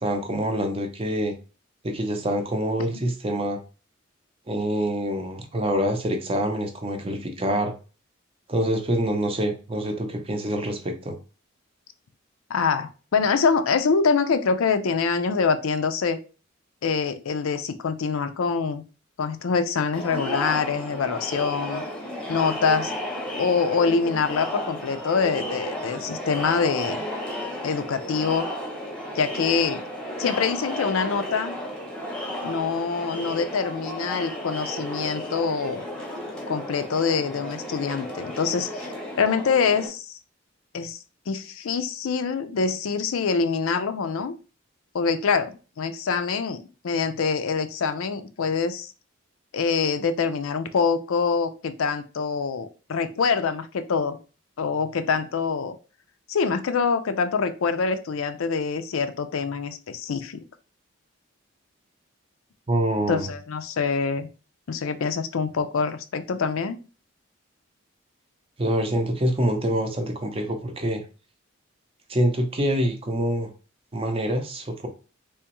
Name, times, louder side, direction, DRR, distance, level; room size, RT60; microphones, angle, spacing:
voice 1, 0.0-1.3 1.8-3.6 4.5-7.7 8.5-11.2 62.7-63.3 68.6-71.0 72.1-73.5 73.9-74.9, right 1 dB, 25° right, 5 dB, 0.5 m, -26 dB
voice 2, 12.5-16.2 16.8-18.8 19.2-21.8 22.3-22.9 23.4-27.0 27.6-28.5 29.1-29.8 30.2-31.5 32.4-35.9 36.5-40.2 40.7-41.0 41.3-44.3 44.9-48.9 49.5-54.2 54.6-55.8 56.3-60.4 63.1-64.3 64.7-66.8, left 5 dB, 85° left, 9 dB, 0.5 m, -25 dB
Crowd, 19.9-39.9, equal, 5° left, 0.8 m, -33 dB
3.5 x 3.0 x 2.9 m, 0.35 s
head